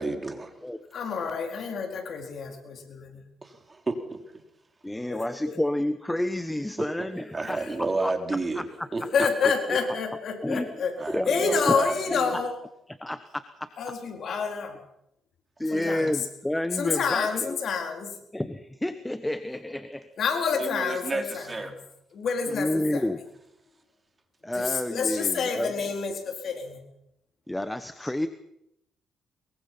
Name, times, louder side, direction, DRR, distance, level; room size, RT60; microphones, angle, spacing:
voice 1, 0.0-0.5 3.4-4.2 7.0-7.1 7.3-8.7 8.9-9.0 9.7-9.8 11.0-12.2 20.5-21.7, right 3 dB, 25° right, 5 dB, 3.5 m, -31 dB
voice 2, 0.9-3.2 5.1-5.6 7.4-7.8 9.1-11.0 11.3-12.6 13.8-14.8 15.7-16.3 16.7-18.2 20.2-21.8 22.1-23.1 24.5-26.8 28.0-28.1, left 5 dB, 60° left, 4 dB, 4.3 m, -28 dB
voice 3, 4.8-7.6 8.0-8.9 10.4-10.7 11.1-11.7 12.1-12.2 13.0-13.7 15.6-17.6 18.3-20.1 22.5-23.2 24.4-25.9 27.5-28.3, left 1 dB, 10° left, 11 dB, 1.2 m, -30 dB
23.0 x 22.5 x 5.8 m, 0.78 s
cardioid pair, 90°, 0 cm